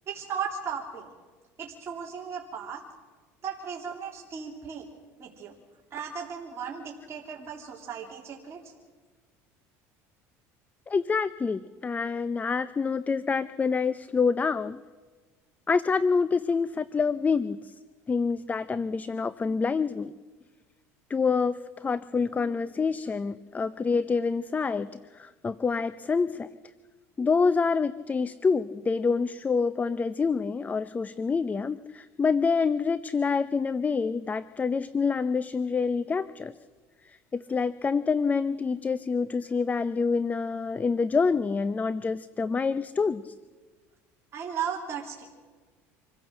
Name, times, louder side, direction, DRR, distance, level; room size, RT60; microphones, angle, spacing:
voice 1, 0.1-1.1 1.6-2.8 3.4-4.9 5.2-5.5 5.9-8.7 44.3-45.2, right 7 dB, 40° right, -2 dB, 3.3 m, -36 dB
voice 2, 10.9-14.8 15.7-17.7 18.1-20.1 21.1-26.5 27.2-36.5 37.0-43.3, left 5 dB, 20° left, 15 dB, 0.6 m, -27 dB
26.0 x 15.5 x 7.8 m, 1.4 s
supercardioid pair, 100°, 7 cm